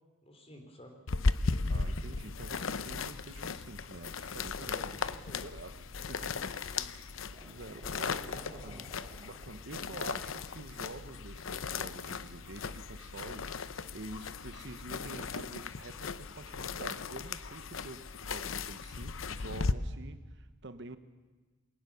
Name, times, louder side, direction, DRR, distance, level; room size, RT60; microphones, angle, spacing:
voice 1, 0.2-1.0 4.4-5.4 6.2-6.9 7.8-8.8, equal, 30° left, 4 dB, 3.4 m, -53 dB
sound 1, 1.1-19.7, left 4 dB, 85° left, 0.8 m, -37 dB
voice 2, 1.7-5.1 5.4-6.9 7.4-8.9 9.2-21.0, right 2 dB, 60° right, 11 dB, 1.1 m, -47 dB
sound 2, 5.7-6.0 7.3-10.4, right 1 dB, 25° right, 3.7 m, -56 dB
22.0 x 18.5 x 7.0 m, 1.3 s
head